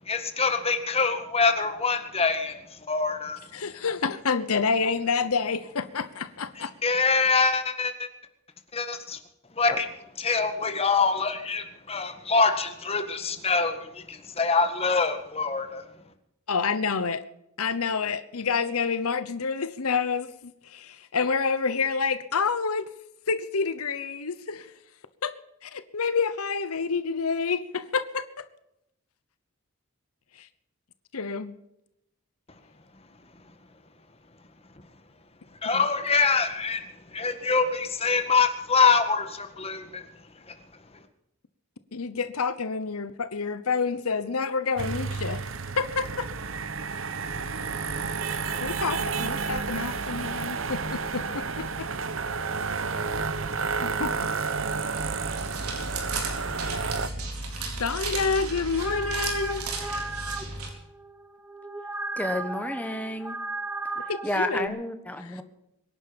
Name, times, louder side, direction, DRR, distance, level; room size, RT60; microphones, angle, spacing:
voice 1, 0.1-3.4 6.6-8.1 8.7-9.2 9.6-9.9 10.2-15.9 35.6-36.8 37.1-40.0, left 4 dB, 25° left, 1.8 m, -25 dB
voice 2, 3.5-6.7 16.5-17.2 17.6-22.9 23.3-24.7 25.2-25.3 25.6-28.4 30.4-30.5 31.1-31.5 41.9-45.4 45.8-46.3 48.6-51.9 53.8-54.1 57.8-59.7 64.1-64.8, left 5 dB, 80° left, 0.9 m, -28 dB
sound 1, 44.8-57.1, right 4 dB, 60° right, 1.0 m, -31 dB
sound 2, 54.9-60.7, right 3 dB, 90° right, 4.2 m, -34 dB
sound 3, 58.5-64.7, right 2 dB, 10° right, 0.9 m, -35 dB
voice 3, 62.2-63.4 64.2-65.4, left 1 dB, 5° left, 1.3 m, -31 dB
24.0 x 11.0 x 5.3 m
head